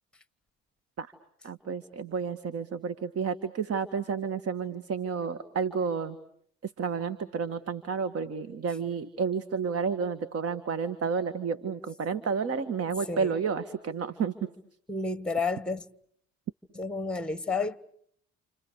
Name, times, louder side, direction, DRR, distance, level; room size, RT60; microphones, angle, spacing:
voice 1, 1.4-6.2 6.6-14.5, right 6 dB, 50° right, 1.9 m, -31 dB
voice 2, 14.9-15.8 16.7-17.8, left 3 dB, 5° left, 1.4 m, -30 dB
29.5 x 29.0 x 6.6 m
hypercardioid pair, 65°, 30 cm